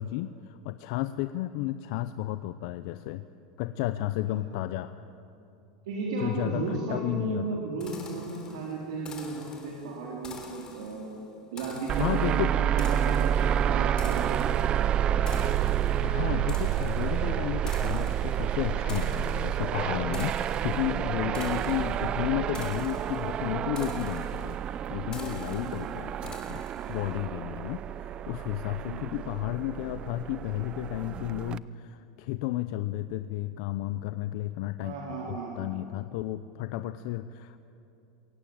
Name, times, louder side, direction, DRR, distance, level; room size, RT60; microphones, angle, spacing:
voice 1, 0.0-3.2 3.6-4.9 6.2-7.5 12.0-12.5 16.0-20.3 20.6-24.6 24.9-26.6 26.9-34.9 35.3-37.6, left 14 dB, 65° left, 12 dB, 0.7 m, -32 dB
voice 2, 5.9-11.1 11.5-12.5 12.7-14.5 21.3-21.6 25.6-25.9 28.8-29.1 34.8-35.5, right 3 dB, 85° right, -4 dB, 4.1 m, -35 dB
sound 1, 7.8-27.2, left 4 dB, 25° left, 3.4 m, -48 dB
sound 2, 11.9-31.6, right 10 dB, 35° right, 0.5 m, -29 dB
22.0 x 17.5 x 8.9 m, 2.8 s
supercardioid pair, 125°, 3 cm